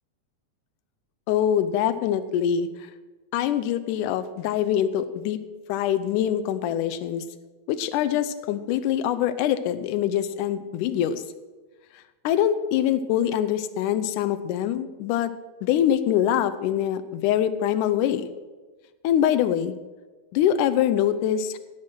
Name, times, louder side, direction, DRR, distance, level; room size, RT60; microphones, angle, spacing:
voice 1, 1.3-2.7 3.3-5.4 5.7-7.2 7.7-11.2 12.2-15.3 15.6-18.3 19.0-19.8 20.3-21.6, left 10 dB, 80° left, 11 dB, 2.1 m, -24 dB
15.0 x 6.0 x 6.1 m, 1.3 s
omnidirectional pair, 3.9 m